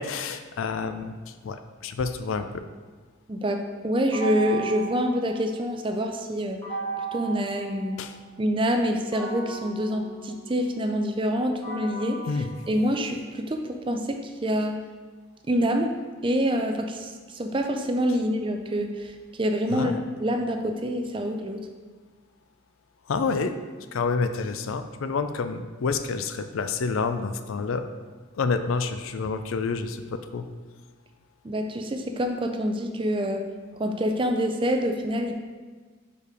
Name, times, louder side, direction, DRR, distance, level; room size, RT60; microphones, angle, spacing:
voice 1, 0.0-2.5 8.0-8.1 12.3-12.5 19.7-20.0 23.1-23.6 23.9-27.8 28.3-30.5, left 4 dB, 75° left, 9 dB, 0.4 m, -28 dB
voice 2, 3.3-6.6 7.1-8.0 8.4-12.2 12.7-14.8 15.5-15.9 16.2-19.9 20.2-21.7 31.4-33.4 33.8-35.4, equal, 25° right, 5 dB, 0.5 m, -26 dB
sound 1, 4.1-5.9 6.6-8.4 9.1-13.4, right 4 dB, 20° left, 1.2 m, -37 dB
5.1 x 4.6 x 4.8 m, 1.4 s
head